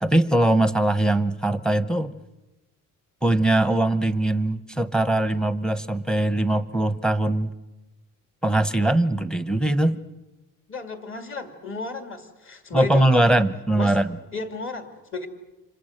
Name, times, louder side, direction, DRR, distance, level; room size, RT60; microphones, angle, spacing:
voice 1, 0.0-2.2 3.2-7.5 8.4-10.0 12.7-14.2, right 1 dB, ahead, 11 dB, 0.8 m, -21 dB
voice 2, 10.7-13.4 13.8-14.0 14.3-15.3, left 3 dB, 40° left, 5 dB, 2.5 m, -34 dB
29.5 x 26.0 x 6.6 m, 1.1 s
cardioid pair, 155°, 33 cm